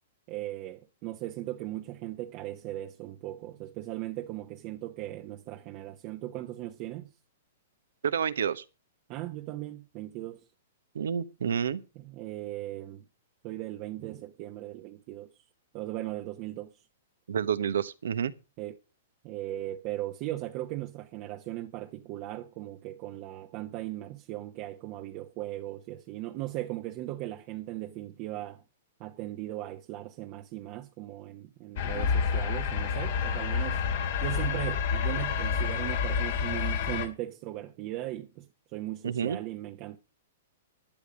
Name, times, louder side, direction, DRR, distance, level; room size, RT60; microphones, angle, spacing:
voice 1, 0.3-7.1 9.1-10.4 12.0-13.0 13.4-15.3 15.7-16.7 18.6-18.7 19.2-28.6 29.0-33.8 34.2-40.0, right 15 dB, 40° right, 1.1 m, -38 dB
voice 2, 8.0-8.6 10.9-11.8 17.3-18.3 39.0-39.4, right 8 dB, 80° right, 1.1 m, -29 dB
sound 1, 31.8-37.1, left 6 dB, 60° left, 2.4 m, -29 dB
12.0 x 11.0 x 5.2 m
hypercardioid pair, 130°, 0 cm